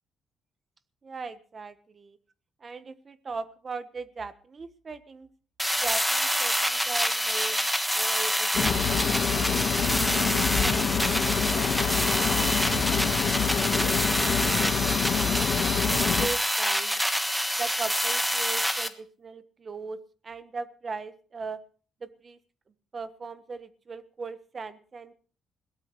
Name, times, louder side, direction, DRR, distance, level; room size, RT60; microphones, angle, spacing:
voice 1, 1.0-2.2 2.6-5.3 5.8-9.8 10.2-13.2 13.7-17.0 17.6-21.6 22.0-22.4 22.9-25.1, right 4 dB, 30° right, 12 dB, 1.2 m, -40 dB
sound 1, 5.6-18.9, equal, ahead, 1.3 m, -27 dB
sound 2, 8.5-16.3, left 7 dB, 55° left, 1.4 m, -27 dB
21.5 x 17.0 x 3.2 m, 0.41 s
cardioid pair, 130°, 0 cm